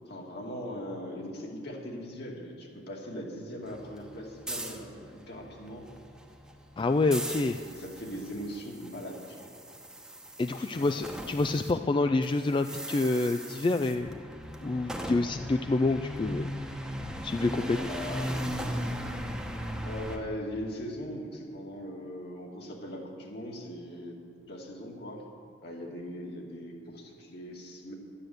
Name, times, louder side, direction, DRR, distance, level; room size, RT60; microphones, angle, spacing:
voice 1, 0.0-5.8 6.9-7.1 7.6-9.5 10.5-10.9 17.6-18.5 19.8-24.2 24.5-25.2 25.6-27.9, equal, 60° left, -1 dB, 2.4 m, -40 dB
sound 1, 3.6-11.7 12.0-20.2, equal, 5° right, 1.1 m, -38 dB
voice 2, 6.8-7.6 10.4-14.2 14.6-16.5 17.2-17.8, left 2 dB, 25° left, 8 dB, 0.3 m, -27 dB
12.0 x 9.9 x 8.0 m, 2.7 s
head